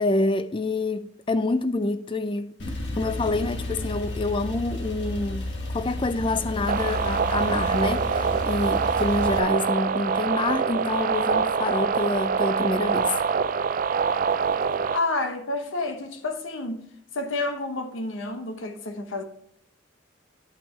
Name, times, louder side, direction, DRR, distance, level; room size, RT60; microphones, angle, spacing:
voice 1, 0.0-2.6 3.0-5.5 5.7-13.1, left 2 dB, 25° left, 0.4 m, -27 dB
Male speech man speaking / Car / Idling, 2.6-9.4, left 1 dB, 60° left, 1.4 m, -32 dB
sound 1, 6.7-15.0, right 6 dB, 45° right, 0.3 m, -25 dB
voice 2, 14.9-16.8 17.1-19.2, left 2 dB, 85° left, 1.1 m, -29 dB
11.0 x 5.7 x 3.3 m
head